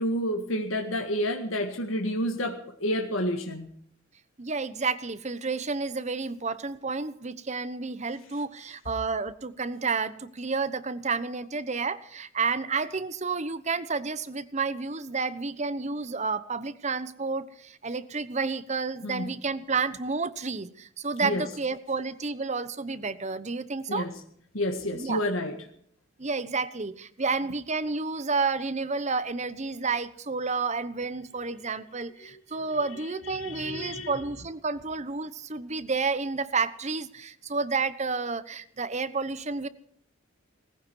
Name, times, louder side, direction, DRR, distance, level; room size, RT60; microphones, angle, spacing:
voice 1, 0.0-3.7 19.0-19.3 21.2-21.4 23.9-24.1 24.5-25.6 33.3-34.1, equal, 85° left, 4 dB, 1.8 m, -29 dB
voice 2, 4.4-24.1 24.9-25.2 26.2-39.7, right 4 dB, 35° right, 14 dB, 1.0 m, -30 dB
19.0 x 15.5 x 4.7 m, 0.64 s
head